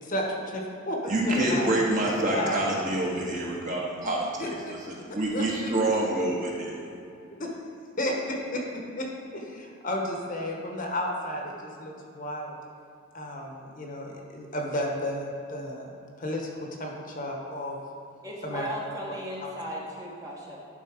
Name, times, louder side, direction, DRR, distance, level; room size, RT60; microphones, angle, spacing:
voice 1, 0.0-1.7 2.3-2.6 4.0-4.1 4.4-4.8 5.3-6.0 7.4-7.5 8.0-8.6 9.0-9.1 9.3-12.6 13.1-17.8 18.4-18.7, left 1 dB, 40° left, 0 dB, 1.0 m, -33 dB
voice 2, 1.1-4.8 5.1-7.0, right 1 dB, 40° right, -3 dB, 1.4 m, -27 dB
voice 3, 18.2-20.6, equal, 15° right, -4 dB, 1.0 m, -36 dB
11.0 x 4.1 x 4.9 m, 2.6 s
head